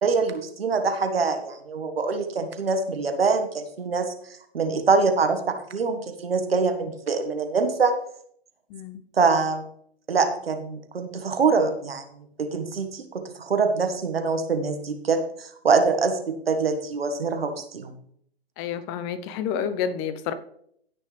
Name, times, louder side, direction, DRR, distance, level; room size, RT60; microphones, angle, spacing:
voice 1, 0.0-4.1 4.5-8.0 9.2-9.6 10.1-12.0 12.4-17.9, right 4 dB, 70° right, 7 dB, 1.7 m, -24 dB
voice 2, 8.7-9.0 18.6-20.3, left 8 dB, 25° left, 13 dB, 0.8 m, -29 dB
16.0 x 6.5 x 3.3 m, 0.67 s
figure-of-eight pair, 120°, 30 cm